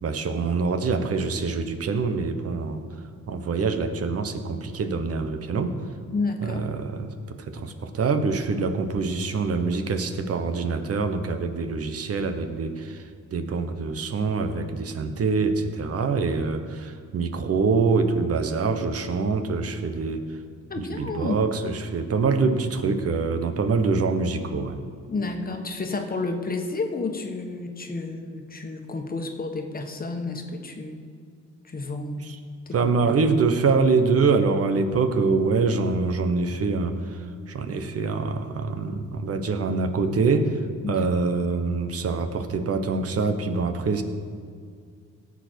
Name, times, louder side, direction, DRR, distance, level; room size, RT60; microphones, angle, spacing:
voice 1, 0.0-2.8 3.3-5.8 6.4-20.3 20.9-24.8 32.2-32.4 32.7-44.0, right 4 dB, 50° right, 8 dB, 1.2 m, -25 dB
voice 2, 6.1-6.6 20.7-21.4 25.1-31.0 31.6-32.2 32.7-32.9 40.8-41.1, left 3 dB, 30° left, 4 dB, 1.4 m, -31 dB
17.5 x 7.1 x 4.6 m, 2.1 s
cardioid pair, 90°, 30 cm